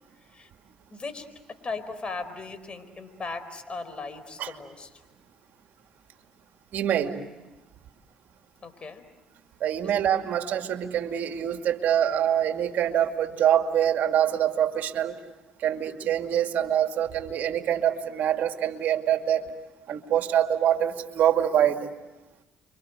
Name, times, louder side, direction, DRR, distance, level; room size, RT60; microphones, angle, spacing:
voice 1, 0.2-0.5 0.9-5.0 8.6-9.1 9.8-9.9, left 3 dB, 35° left, 10 dB, 4.6 m, -38 dB
voice 2, 6.7-7.2 9.6-15.2 15.6-19.5 19.9-21.9, right 10 dB, 65° right, 6 dB, 2.3 m, -25 dB
30.0 x 25.0 x 7.9 m, 1.1 s
supercardioid pair, 65°, 3 cm